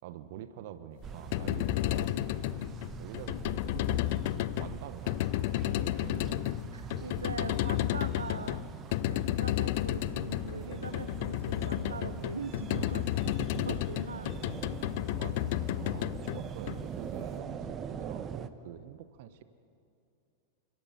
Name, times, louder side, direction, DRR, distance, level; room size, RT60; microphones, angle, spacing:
voice 1, 0.0-2.3 3.0-6.5 12.8-14.0 15.2-19.4, right 11 dB, 50° right, 12 dB, 1.1 m, -46 dB
sound 1, 1.0-18.5, right 8 dB, 25° right, 1.1 m, -43 dB
sound 2, 1.1-17.3, left 17 dB, 50° left, 0.5 m, -32 dB
voice 2, 6.7-8.6 9.1-13.1 13.7-14.3, right 5 dB, 75° right, 13 dB, 0.8 m, -41 dB
29.5 x 27.0 x 5.8 m, 2.6 s
figure-of-eight pair, 90°, 0 cm